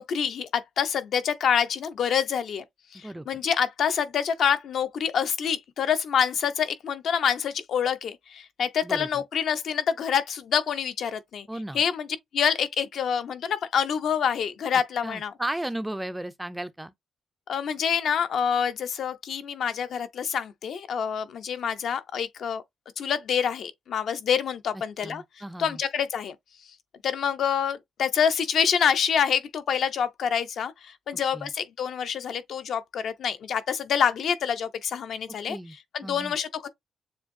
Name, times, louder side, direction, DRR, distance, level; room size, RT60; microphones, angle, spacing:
voice 1, 0.0-2.6 2.9-11.5 11.7-12.1 12.3-15.3 17.5-22.6 23.0-25.2 25.6-26.3 27.0-35.6 35.9-36.7, left 7 dB, 60° left, 0.6 m, -26 dB
voice 2, 11.5-11.8 15.0-16.9 25.0-25.8 31.3-31.5 35.5-35.8 36.0-36.4, right 1 dB, 5° right, 0.3 m, -34 dB
7.1 x 2.6 x 2.5 m
cardioid pair, 150°, 0 cm